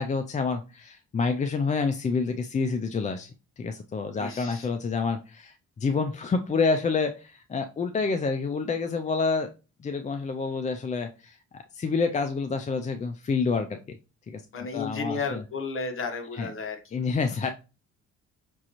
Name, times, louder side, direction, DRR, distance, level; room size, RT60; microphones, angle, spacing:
voice 1, 0.0-3.3 3.6-9.5 9.8-14.0 14.3-15.4 16.4-16.5 16.9-17.5, left 4 dB, 25° left, 7 dB, 0.4 m, -28 dB
voice 2, 4.1-4.7 14.5-16.8, left 4 dB, 45° left, 5 dB, 1.1 m, -33 dB
6.0 x 2.5 x 2.9 m, 0.31 s
cardioid pair, 90°, 30 cm